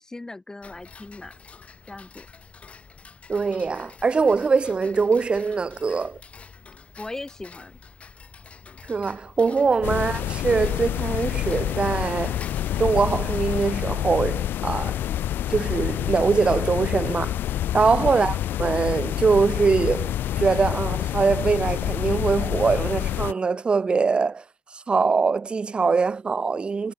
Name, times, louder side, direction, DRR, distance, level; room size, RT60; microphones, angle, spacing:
voice 1, 0.0-1.4 1.9-2.3 7.0-7.8 9.8-10.1 18.0-18.2, left 2 dB, 15° left, 0.8 m, -38 dB
Tick-tock, 0.6-13.7, left 5 dB, 35° left, 2.0 m, -47 dB
voice 2, 3.3-6.2 8.9-12.4 12.8-15.0 15.5-17.4 17.7-24.4 24.7-26.9, right 4 dB, 25° right, 0.5 m, -23 dB
sound 1, 9.8-23.3, left 12 dB, 65° left, 0.4 m, -27 dB
cardioid pair, 100°, 4 cm